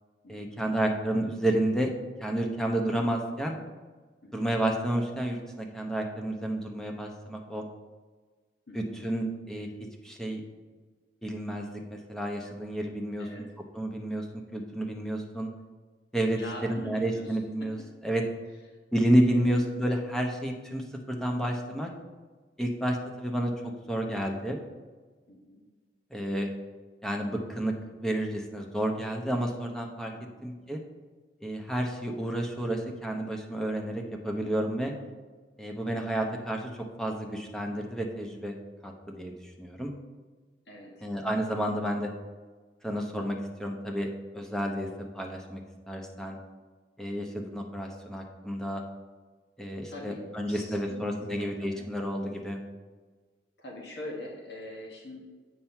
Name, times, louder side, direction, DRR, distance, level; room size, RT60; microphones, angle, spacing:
voice 1, 0.3-1.9 2.2-3.6 4.3-7.6 8.7-9.7 10.0-10.4 11.2-13.3 13.7-14.3 14.5-15.5 16.1-17.8 18.0-18.2 18.9-21.9 22.6-23.5 23.9-24.6 26.1-26.5 27.0-27.7 28.0-30.1 30.4-30.8 31.4-34.9 35.6-38.6 38.8-39.9 41.0-42.1 42.8-44.9 45.1-45.6 45.9-46.4 47.0-48.8 49.6-52.6, right 1 dB, 5° left, 1 dB, 0.8 m, -30 dB
voice 2, 8.7-9.0 13.2-13.4 16.3-17.7 19.3-19.6 25.3-25.6 30.1-30.4 34.8-35.1 40.7-41.1 49.9-51.0 51.3-51.9 53.6-55.2, left 1 dB, 65° left, 0 dB, 1.3 m, -44 dB
7.5 x 5.8 x 4.4 m, 1.4 s
head